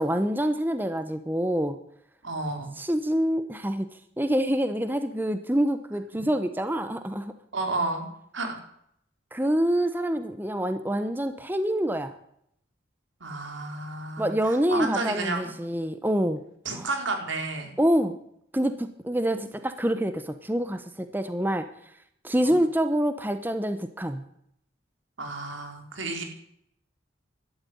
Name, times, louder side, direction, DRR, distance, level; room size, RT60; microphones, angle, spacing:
voice 1, 0.0-1.8 2.8-3.9 4.2-7.3 9.3-12.1 14.2-16.4 16.7-16.9 17.8-18.2 18.5-21.6 22.2-24.2, equal, 10° right, 9 dB, 0.9 m, -26 dB
voice 2, 2.2-2.7 7.5-8.1 8.3-8.6 13.2-15.5 16.6-17.7 22.4-22.5 25.2-26.2, right 2 dB, 85° right, 4 dB, 4.1 m, -31 dB
12.5 x 12.0 x 9.4 m, 0.70 s
head